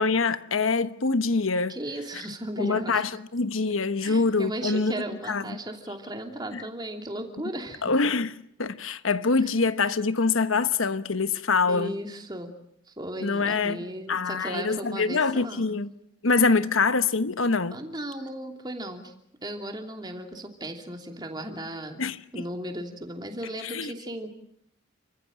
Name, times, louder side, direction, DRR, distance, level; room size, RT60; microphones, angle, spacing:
voice 1, 0.0-1.8 2.6-4.9 5.3-5.4 6.5-6.6 7.8-8.3 8.6-12.0 13.2-13.8 14.1-15.9 16.2-17.8 22.0-22.5 23.6-23.9, left 4 dB, 90° left, 1.2 m, -25 dB
voice 2, 1.7-3.1 4.0-7.8 9.4-9.5 11.6-12.5 12.9-15.7 17.7-19.1 19.4-22.0 22.3-24.3, right 1 dB, 20° right, 2.9 m, -36 dB
29.5 x 15.5 x 9.0 m
head